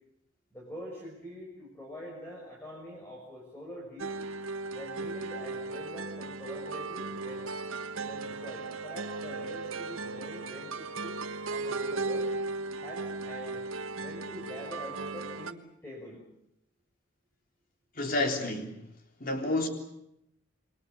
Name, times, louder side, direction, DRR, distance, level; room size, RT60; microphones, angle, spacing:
voice 1, 0.5-4.1 4.7-7.4 8.1-11.2 11.5-12.3 12.8-13.6 14.0-16.3, equal, 10° left, -2 dB, 6.3 m, -45 dB
sound 1, 4.0-15.5, right 3 dB, 85° right, 1.3 m, -36 dB
voice 2, 18.0-18.8 19.2-19.7, left 2 dB, 45° left, 4 dB, 3.5 m, -29 dB
28.0 x 23.0 x 7.1 m, 0.81 s
head